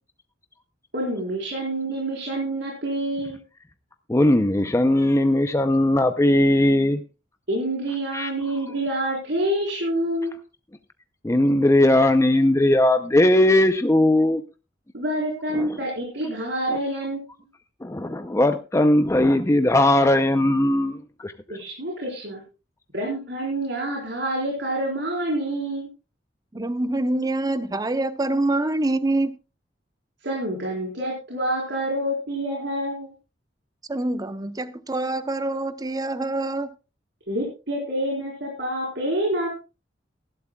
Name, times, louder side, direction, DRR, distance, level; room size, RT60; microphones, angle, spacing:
voice 1, 0.9-3.4 7.5-10.4 14.9-17.2 21.5-22.4 22.9-25.9 30.2-33.1 37.3-39.5, right 1 dB, 65° right, 4.3 m, -27 dB
voice 2, 4.1-7.0 8.1-8.3 11.2-14.4 15.5-15.7 17.8-21.3, left 1 dB, 15° left, 0.6 m, -19 dB
voice 3, 26.5-29.3 33.9-36.7, right 2 dB, 20° right, 0.8 m, -25 dB
18.5 x 12.0 x 2.3 m
head